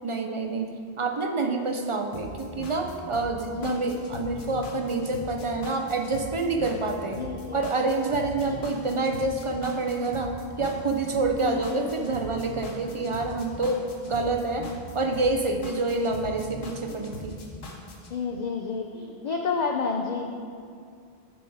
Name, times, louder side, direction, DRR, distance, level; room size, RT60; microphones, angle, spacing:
voice 1, 0.0-0.7 1.0-7.2 7.5-14.7 14.9-17.4, right 3 dB, 50° right, 4 dB, 0.3 m, -27 dB
sound 1, 2.1-18.1, left 1 dB, 70° left, 1.1 m, -40 dB
voice 2, 3.5-3.9 7.2-7.6 8.4-8.5 11.4-11.6 12.0-12.7 18.1-20.2, left 5 dB, 55° left, 2 dB, 0.5 m, -31 dB
9.2 x 4.6 x 4.7 m, 2.2 s
omnidirectional pair, 1.1 m